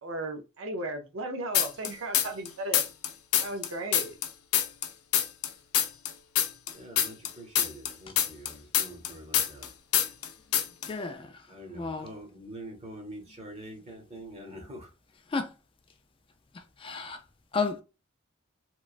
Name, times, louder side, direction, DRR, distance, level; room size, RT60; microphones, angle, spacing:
voice 1, 0.0-2.8 3.4-4.1, right 2 dB, 65° right, 0.6 m, -35 dB
sound 1, 1.5-2.5 2.7-5.5 5.7-9.7 9.9-10.3 10.5-10.9, left 10 dB, 85° left, 0.5 m, -25 dB
voice 2, 6.7-9.7 11.5-14.9, right 1 dB, 30° right, 0.9 m, -45 dB
voice 3, 10.9-11.4 11.7-12.1 15.3-15.5 16.8-17.2 17.5-17.8, left 4 dB, 25° left, 0.3 m, -32 dB
3.0 x 2.2 x 2.4 m
head